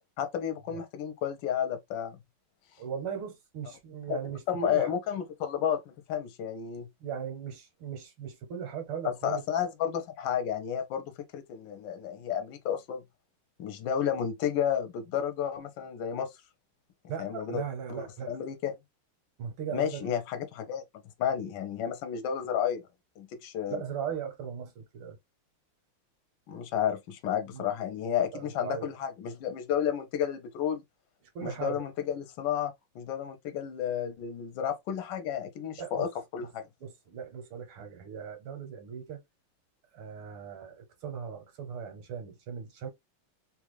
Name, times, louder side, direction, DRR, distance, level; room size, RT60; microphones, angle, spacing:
voice 1, 0.2-2.2 4.1-4.2 4.5-6.9 9.0-13.0 13.6-16.3 17.2-17.6 17.9-18.8 19.7-20.8 21.2-22.8 23.2-23.8 26.5-30.8 31.4-36.7, left 9 dB, 65° left, 1.4 m, -32 dB
voice 2, 2.8-4.9 7.0-9.4 17.1-18.3 19.4-20.1 23.7-25.2 27.5-27.8 28.2-28.9 31.4-31.9 35.8-36.1 36.8-39.2 39.9-42.9, right 7 dB, 80° right, 2.0 m, -38 dB
3.9 x 2.4 x 3.1 m
omnidirectional pair, 2.3 m